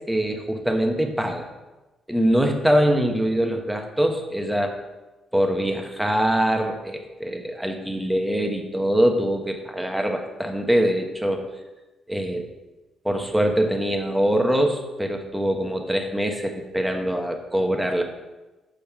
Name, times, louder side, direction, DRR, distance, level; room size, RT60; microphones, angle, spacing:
voice 1, 0.1-1.5 2.1-4.7 5.3-11.5 12.1-12.5 13.0-18.0, equal, 5° right, 4 dB, 1.1 m, -23 dB
6.9 x 5.2 x 5.7 m, 1.1 s
cardioid pair, 90°, 0 cm